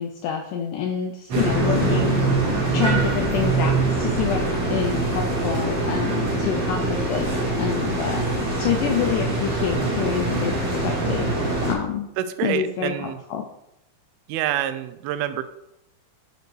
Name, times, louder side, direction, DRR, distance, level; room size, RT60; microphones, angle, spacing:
voice 1, 0.0-2.3 2.7-8.2 8.6-12.1 12.4-13.4, left 8 dB, 85° left, 3 dB, 1.8 m, -27 dB
sound 1, 1.3-11.7, right 2 dB, 45° right, 2.5 m, -23 dB
voice 2, 12.2-13.2 14.3-15.4, right 11 dB, 90° right, 12 dB, 2.5 m, -27 dB
7.8 x 5.3 x 4.7 m, 0.85 s
omnidirectional pair, 4.3 m